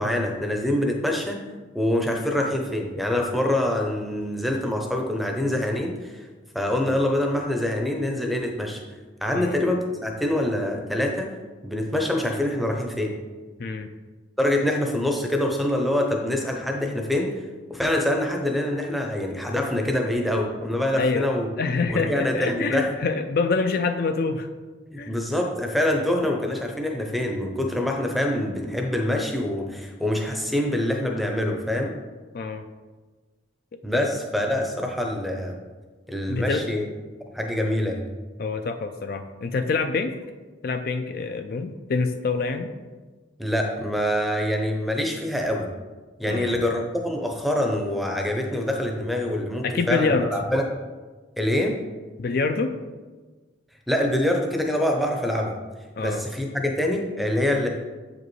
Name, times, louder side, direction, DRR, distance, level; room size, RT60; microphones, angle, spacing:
voice 1, 0.0-1.4 1.7-6.2 6.5-8.8 9.2-11.3 11.6-13.2 14.4-17.4 17.7-21.5 21.9-22.9 24.9-31.9 33.8-35.6 36.1-36.9 37.3-38.1 43.4-45.7 46.2-50.7 51.4-51.8 53.9-55.6 56.0-57.7, left 1 dB, ahead, 2 dB, 0.6 m, -25 dB
voice 2, 13.6-13.9 21.0-21.3 21.6-24.5 25.0-25.1 32.3-32.6 33.9-34.0 36.3-36.6 38.4-40.1 40.6-42.7 46.3-46.6 49.6-50.3 52.2-52.7 56.0-56.2, left 4 dB, 50° left, 7 dB, 0.4 m, -26 dB
7.7 x 5.0 x 3.1 m, 1.3 s
head